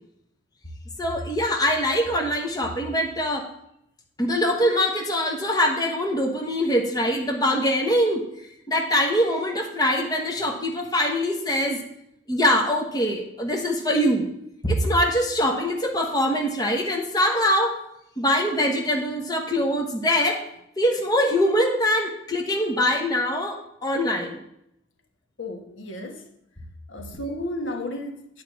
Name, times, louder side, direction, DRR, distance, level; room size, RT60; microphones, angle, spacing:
voice 1, 1.0-3.5 4.2-8.2 8.7-11.8 12.3-14.3 14.6-17.7 18.2-20.4 20.8-24.4, equal, 20° left, 0 dB, 1.2 m, -23 dB
voice 2, 25.4-26.3 26.9-28.4, left 1 dB, 75° left, 4 dB, 1.3 m, -33 dB
9.2 x 4.9 x 7.4 m, 0.77 s
head